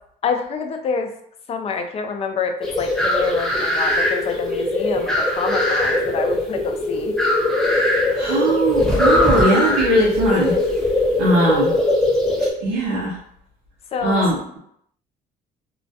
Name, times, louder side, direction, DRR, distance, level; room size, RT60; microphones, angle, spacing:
voice 1, 0.2-1.1 1.5-7.2 13.9-14.3, left 5 dB, 35° left, 5 dB, 0.4 m, -27 dB
sound 1, 2.6-12.5, left 1 dB, 5° left, 0.7 m, -20 dB
voice 2, 8.1-10.6 11.2-11.7 12.6-13.1 14.0-14.6, right 1 dB, 90° right, -5 dB, 0.6 m, -20 dB
2.2 x 2.1 x 2.7 m, 0.70 s
cardioid pair, 110°, 17 cm